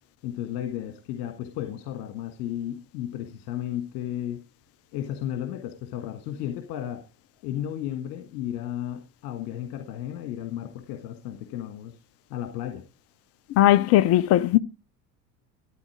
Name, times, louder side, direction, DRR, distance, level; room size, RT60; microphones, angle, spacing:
voice 1, 0.2-4.4 4.9-7.0 7.4-12.0 12.3-12.8, left 11 dB, 50° left, 1.9 m, -34 dB
voice 2, 13.5-14.6, left 14 dB, 30° left, 0.5 m, -18 dB
13.5 x 9.3 x 4.9 m
figure-of-eight pair, 70°, 49 cm